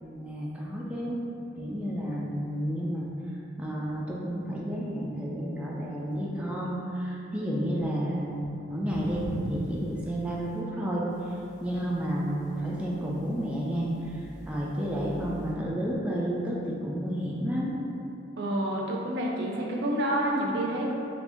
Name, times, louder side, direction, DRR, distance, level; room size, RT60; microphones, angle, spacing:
voice 1, 0.0-1.2 1.6-3.1 3.6-9.2 9.5-11.0 11.6-17.7, equal, 5° right, -5 dB, 0.3 m, -31 dB
sound 1, 8.9-10.6 11.1-15.5, equal, 40° left, 1.1 m, -41 dB
voice 2, 18.4-20.9, right 1 dB, 65° right, -2 dB, 0.5 m, -28 dB
3.5 x 2.8 x 2.5 m, 2.7 s
head